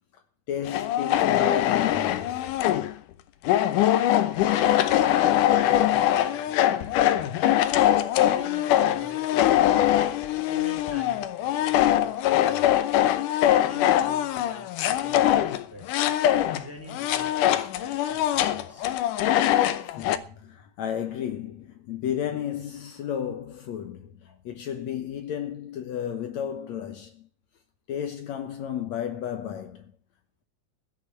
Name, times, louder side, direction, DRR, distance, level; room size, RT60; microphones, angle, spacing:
voice 1, 0.5-2.4 20.0-27.3 27.9-29.9, left 9 dB, 65° left, 2.2 m, -33 dB
sound 1, 0.7-2.9 3.4-16.6 16.9-20.2, left 12 dB, 85° left, 2.4 m, -22 dB
voice 2, 4.5-7.2 8.2-9.9 10.5-12.7 13.5-16.0 16.5-18.9, left 1 dB, 5° right, 2.8 m, -45 dB
15.5 x 6.0 x 9.8 m
omnidirectional pair, 3.6 m